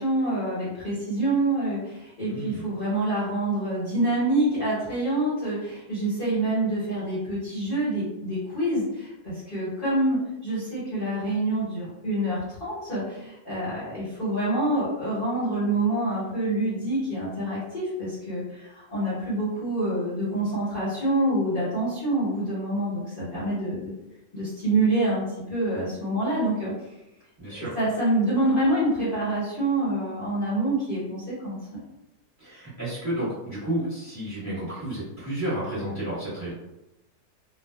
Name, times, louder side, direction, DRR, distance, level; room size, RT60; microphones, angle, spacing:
voice 1, 0.0-23.9 24.3-26.7 27.6-31.8, right 1 dB, 40° left, -11 dB, 0.9 m, -26 dB
voice 2, 2.2-2.7 27.4-27.8 32.4-36.5, right 1 dB, 10° right, -10 dB, 1.0 m, -31 dB
2.5 x 2.2 x 2.2 m, 0.92 s
omnidirectional pair, 1.7 m